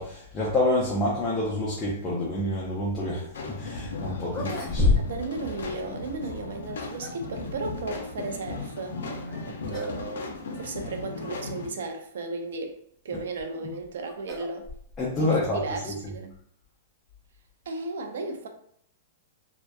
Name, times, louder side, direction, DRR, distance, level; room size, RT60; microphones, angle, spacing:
voice 1, 0.0-4.9 9.6-9.7 13.1-13.2 15.0-15.9, left 1 dB, 15° left, -6 dB, 0.4 m, -28 dB
sound 1, 3.3-11.7, left 3 dB, 80° left, 0.4 m, -36 dB
sound 2, 4.2-5.4 5.6-5.7 6.6-7.3 9.1-9.4 9.7-10.0 10.3-10.4 11.2-11.3 13.1-15.2, left 3 dB, 5° right, 0.8 m, -29 dB
voice 2, 5.1-9.0 9.5-12.7 13.0-14.7 15.2-16.4 17.7-18.5, right 3 dB, 75° right, 5 dB, 0.5 m, -35 dB
2.7 x 2.1 x 2.2 m, 0.67 s
hypercardioid pair, 165°, 0 cm